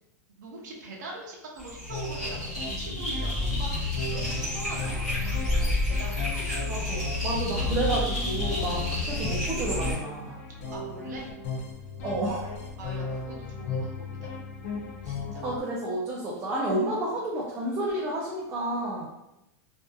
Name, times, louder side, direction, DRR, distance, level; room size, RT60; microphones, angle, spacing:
voice 1, 0.3-6.7 8.8-9.0 10.5-11.3 12.8-14.3 15.0-15.4, right 2 dB, 85° right, -1 dB, 0.7 m, -43 dB
sound 1, 1.6-9.9, left 2 dB, ahead, 1.0 m, -29 dB
sound 2, 1.9-15.6, left 3 dB, 50° left, 0.4 m, -37 dB
voice 2, 6.6-10.3 12.0-12.5 15.4-19.1, right 1 dB, 20° right, -5 dB, 0.3 m, -30 dB
2.6 x 2.4 x 2.2 m, 0.89 s
supercardioid pair, 170°, 9 cm